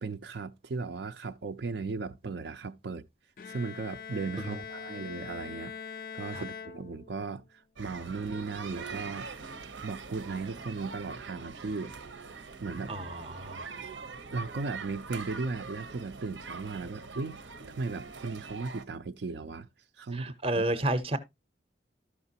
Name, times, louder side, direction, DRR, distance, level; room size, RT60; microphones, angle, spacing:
voice 1, 0.0-3.0 3.4-9.3 9.8-11.9 12.6-12.9 14.3-17.4 17.8-19.7 20.0-20.6, right 4 dB, 70° right, 0.5 m, -36 dB
Bowed string instrument, 3.4-7.4, left 6 dB, 50° left, 0.4 m, -43 dB
sound 1, 7.8-18.8, right 4 dB, 90° right, 0.8 m, -43 dB
voice 2, 12.9-13.7 20.1-21.2, right 1 dB, 30° right, 0.7 m, -31 dB
13.0 x 5.8 x 2.7 m
head